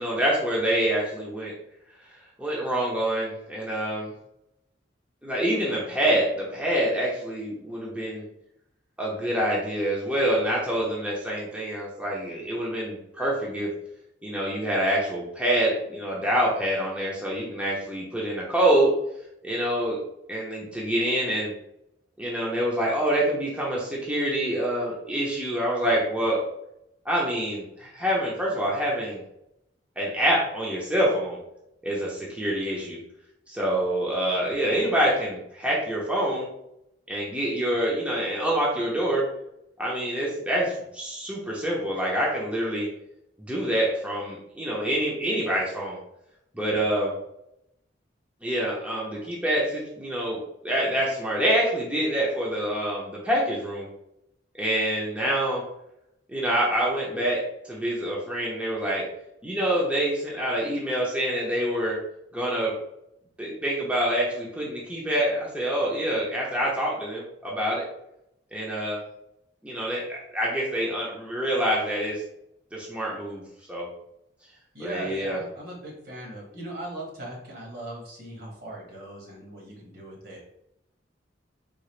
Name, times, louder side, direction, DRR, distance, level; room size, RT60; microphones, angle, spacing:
voice 1, 0.0-1.5 2.4-4.1 5.2-8.2 9.0-13.7 14.2-18.9 19.4-20.0 20.3-21.5 22.2-26.4 27.0-29.2 30.0-31.4 31.8-33.0 33.5-36.5 37.1-39.2 39.8-42.9 43.4-46.0 46.5-47.1 48.4-53.9 54.6-55.6 56.3-57.4 57.7-59.0 59.4-62.0 62.3-62.7 63.4-67.8 68.5-69.0 69.6-72.2 72.7-73.4 73.7-73.9 74.8-75.4, right 1 dB, 5° right, -5 dB, 0.7 m, -26 dB
voice 2, 74.7-80.5, right 1 dB, 60° right, -2 dB, 1.3 m, -39 dB
3.7 x 2.5 x 3.1 m, 0.80 s
head